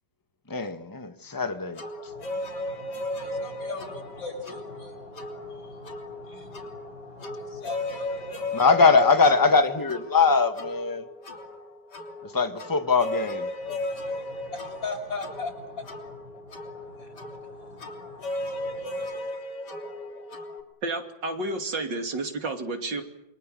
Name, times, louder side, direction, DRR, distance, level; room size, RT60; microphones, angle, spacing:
voice 1, 0.5-1.8 8.5-11.0 12.3-13.5, left 4 dB, 10° left, 8 dB, 1.5 m, -21 dB
sound 1, 1.7-20.6, left 1 dB, 65° left, 4.0 m, -36 dB
voice 2, 2.1-8.9 9.4-9.5 13.6-19.1, left 3 dB, 90° left, 3 dB, 7.0 m, -41 dB
voice 3, 20.8-23.0, right 2 dB, 75° right, 5 dB, 3.4 m, -30 dB
28.5 x 24.0 x 7.8 m, 0.85 s
omnidirectional pair, 2.0 m